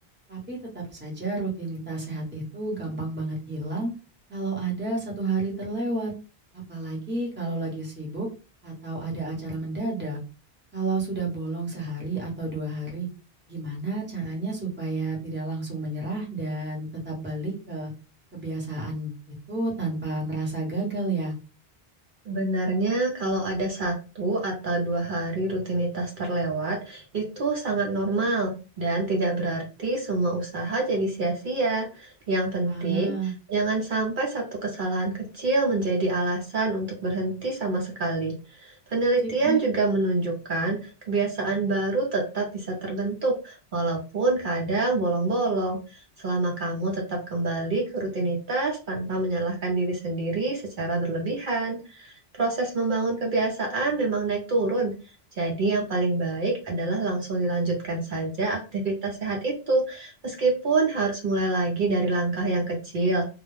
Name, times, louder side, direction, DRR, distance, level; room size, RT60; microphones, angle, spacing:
voice 1, 0.3-3.9 4.3-6.1 6.7-8.3 8.6-10.2 10.7-13.1 13.5-17.9 18.3-21.4 32.7-33.3 39.4-39.6, right 3 dB, 10° right, -2 dB, 0.8 m, -31 dB
voice 2, 22.3-54.9 55.4-63.3, right 2 dB, 60° right, 0 dB, 0.7 m, -26 dB
2.3 x 2.0 x 3.1 m, 0.33 s
omnidirectional pair, 1.0 m